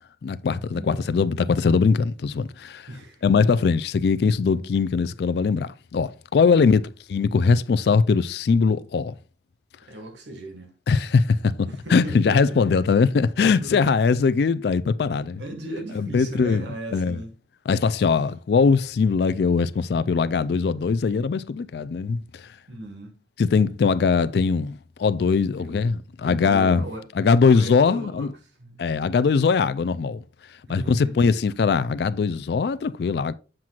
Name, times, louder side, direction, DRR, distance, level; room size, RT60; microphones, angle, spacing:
voice 1, 0.2-2.9 3.2-6.8 7.1-9.1 10.9-15.4 16.0-16.6 16.9-17.2 17.7-22.5 23.4-26.9 27.2-28.3 28.8-30.2 30.7-33.3, left 5 dB, 70° left, 0.3 m, -21 dB
voice 2, 0.7-1.1 2.9-3.6 6.6-6.8 9.9-10.7 11.7-12.7 13.6-13.9 15.4-17.3 22.7-23.2 25.4-25.8 26.2-27.1 27.5-28.8 30.7-31.2, right 1 dB, 85° right, 1.7 m, -37 dB
7.6 x 5.9 x 2.4 m
head